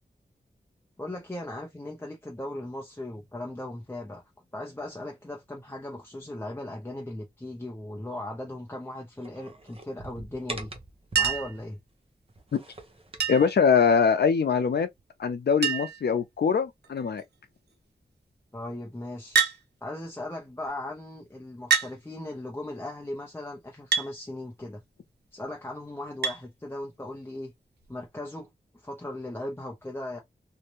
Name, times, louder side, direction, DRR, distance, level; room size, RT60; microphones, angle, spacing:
voice 1, 1.0-4.2 4.5-10.7 11.1-11.8 18.5-19.4 19.8-24.8 25.3-27.5 27.9-28.5 28.8-30.2, left 1 dB, 15° left, 0.5 m, -38 dB
sound 1, 9.2-11.7 12.3-13.5, right 2 dB, 35° right, 0.7 m, -43 dB
Chink clink, 11.2-11.6 13.2-13.6 15.0-15.1 15.3-15.4 15.6-16.1 16.8-17.2 19.3-19.6 20.7-20.8 21.7-21.9 23.9-24.1 26.2-26.4 27.8-27.9, right 6 dB, 85° right, 0.5 m, -26 dB
voice 2, 13.3-14.9 15.2-17.2, left 6 dB, 80° left, 0.5 m, -23 dB
2.6 x 2.2 x 2.9 m
wide cardioid pair, 80°, 17 cm